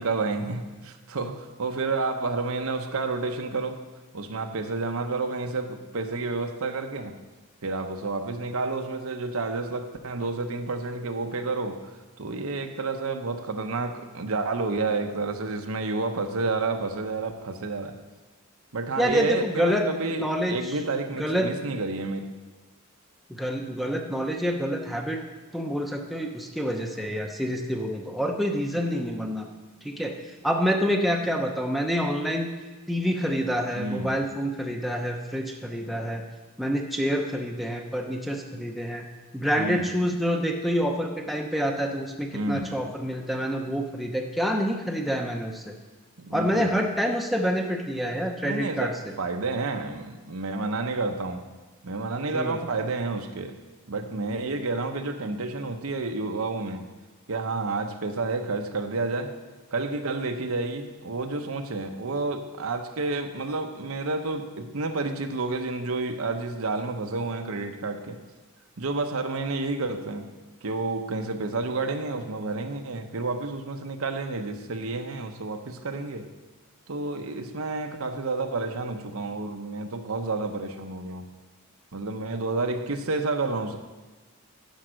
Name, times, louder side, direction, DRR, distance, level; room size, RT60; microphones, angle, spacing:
voice 1, 0.0-3.8 4.1-7.2 7.6-11.8 12.2-18.0 18.7-22.3 33.8-34.1 39.6-39.9 42.3-42.7 46.2-46.7 48.4-51.4 51.8-53.6 53.9-56.9 57.3-59.3 59.7-68.2 68.8-70.3 70.6-76.3 76.9-81.3 81.9-83.8, right 3 dB, 75° right, 6 dB, 0.8 m, -30 dB
voice 2, 19.0-19.8 20.1-20.6 21.2-21.5 23.3-25.2 25.5-29.5 29.8-30.1 30.4-32.5 32.9-36.2 36.6-39.1 39.3-45.7 46.3-48.9 52.3-52.6, equal, ahead, 1 dB, 0.7 m, -27 dB
10.5 x 5.6 x 6.3 m, 1.3 s
head